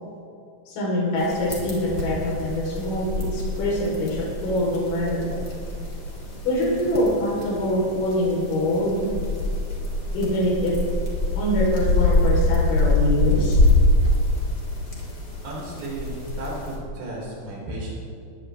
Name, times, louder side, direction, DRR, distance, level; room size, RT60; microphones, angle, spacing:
voice 1, 0.7-5.4 6.4-9.1 10.1-10.7 11.3-13.6, left 1 dB, 75° left, -5 dB, 6.7 m, -24 dB
sound 1, 1.2-16.8, left 2 dB, 25° left, 3.5 m, -25 dB
voice 2, 15.4-17.9, right 1 dB, 80° right, -5 dB, 7.9 m, -34 dB
21.0 x 19.5 x 3.6 m, 2.5 s
omnidirectional pair, 5.5 m